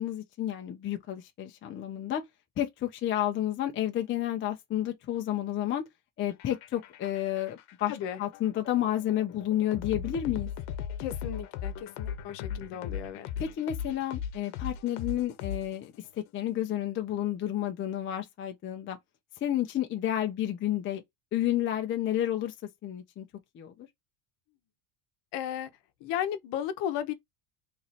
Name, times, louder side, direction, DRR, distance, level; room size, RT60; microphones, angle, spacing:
voice 1, 0.0-2.2 2.6-5.8 6.2-7.9 8.2-10.5 13.4-15.9 16.3-19.0 19.4-21.0 21.3-22.5 22.8-23.3 23.5-23.9, left 12 dB, 25° left, 0.4 m, -30 dB
sound 1, 6.3-16.1, left 8 dB, 85° left, 0.9 m, -38 dB
voice 2, 7.9-8.2 11.0-13.3 25.3-25.7 26.0-27.1, left 10 dB, 60° left, 0.9 m, -34 dB
3.1 x 2.6 x 4.0 m
cardioid pair, 155°, 49 cm